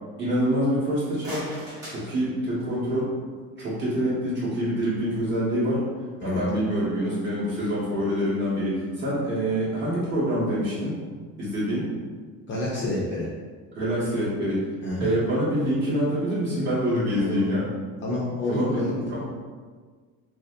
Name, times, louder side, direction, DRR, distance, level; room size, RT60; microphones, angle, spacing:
voice 1, 0.2-1.5 1.8-3.1 3.6-5.8 6.2-11.0 11.3-11.9 13.8-14.6 15.0-17.7 18.4-19.2, equal, 30° right, -10 dB, 1.5 m, -26 dB
sound 1, 1.0-2.9, equal, 10° right, 1.3 m, -40 dB
voice 2, 12.5-13.3 14.8-15.1 17.2-17.5 18.0-19.2, left 1 dB, 35° left, -5 dB, 0.5 m, -28 dB
5.2 x 2.0 x 2.5 m, 1.6 s
cardioid pair, 165°, 35 cm